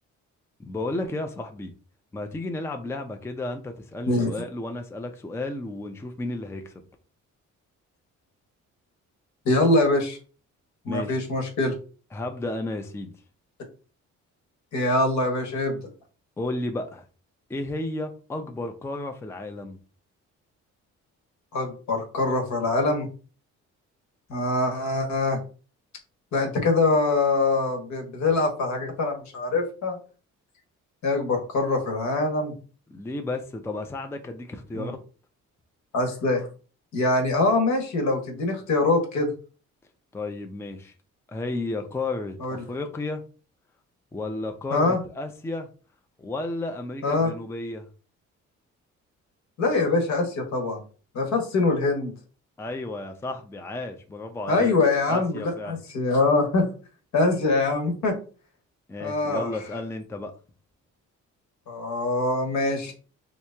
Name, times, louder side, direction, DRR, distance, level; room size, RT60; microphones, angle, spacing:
voice 1, 0.6-1.7 2.1-6.8 10.9-11.2 12.1-13.1 16.4-17.0 17.5-19.8 32.9-35.0 40.1-40.9 41.3-43.2 44.1-45.7 46.2-47.9 52.6-54.8 55.1-55.8 58.9-60.3, left 2 dB, 10° left, 0.4 m, -33 dB
voice 2, 9.4-10.2 10.8-11.7 14.7-15.8 21.5-23.1 24.3-25.4 26.3-30.0 31.0-32.5 34.7-34.9 35.9-36.5 36.9-39.3 42.4-42.6 44.7-45.0 47.0-47.3 49.6-50.8 51.1-52.1 54.5-56.7 57.1-58.1 59.0-59.5 61.7-62.9, left 2 dB, 70° left, 1.2 m, -23 dB
2.9 x 2.8 x 3.3 m
cardioid pair, 90°, 30 cm